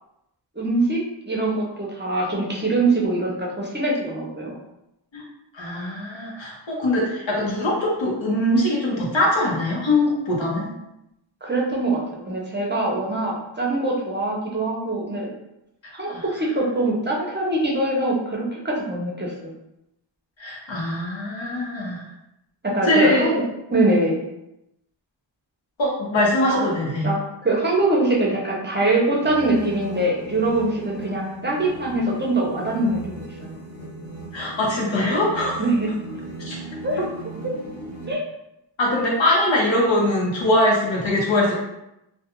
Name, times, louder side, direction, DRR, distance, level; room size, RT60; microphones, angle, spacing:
voice 1, 0.6-4.6 11.4-15.3 15.9-19.5 22.6-23.4 23.7-24.2 26.5-26.7 27.0-33.6 35.6-35.9 36.8-37.0 37.4-37.5 38.1-38.2, right 2 dB, 25° right, -3 dB, 0.5 m, -23 dB
voice 2, 5.5-10.7 15.8-16.2 20.4-22.0 22.8-23.3 25.8-27.1 34.3-35.6 36.5-36.6 38.8-41.5, left 1 dB, 75° left, -3 dB, 0.9 m, -22 dB
sound 1, 29.1-38.1, right 2 dB, 5° left, 1.1 m, -37 dB
2.3 x 2.2 x 2.9 m, 0.87 s
wide cardioid pair, 85°, 46 cm